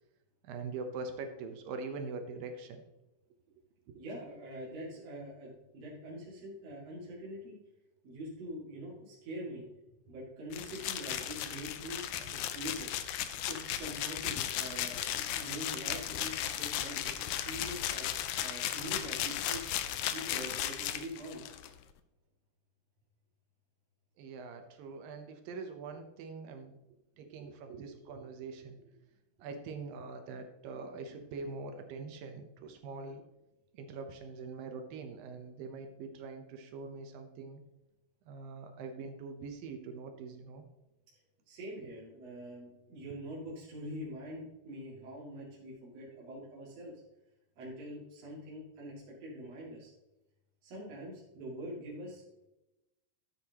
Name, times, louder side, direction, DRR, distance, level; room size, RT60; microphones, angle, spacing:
voice 1, 0.4-2.8 3.9-4.0 24.2-26.8 27.2-28.9 29.4-33.2 33.7-37.6 38.3-40.6, right 4 dB, 75° right, 5 dB, 2.5 m, -43 dB
voice 2, 3.9-7.6 8.0-9.6 10.0-12.9 13.5-18.1 18.4-19.6 20.0-21.4 41.5-46.9 47.6-49.9 50.6-52.4, equal, 50° right, -6 dB, 3.1 m, -44 dB
sound 1, 10.5-21.7, left 11 dB, 80° left, 1.7 m, -36 dB
13.5 x 8.1 x 2.9 m, 0.99 s
omnidirectional pair, 4.2 m